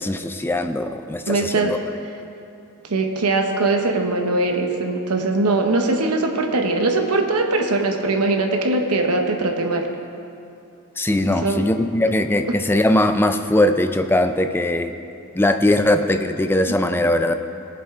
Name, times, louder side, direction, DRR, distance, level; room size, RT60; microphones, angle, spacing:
voice 1, 0.0-1.8 11.0-14.9 15.4-17.3, left 1 dB, 10° left, 8 dB, 0.4 m, -20 dB
voice 2, 1.3-1.7 2.9-9.9 11.4-11.7, right 2 dB, 90° right, 4 dB, 0.9 m, -21 dB
18.0 x 7.8 x 3.6 m, 2.6 s
head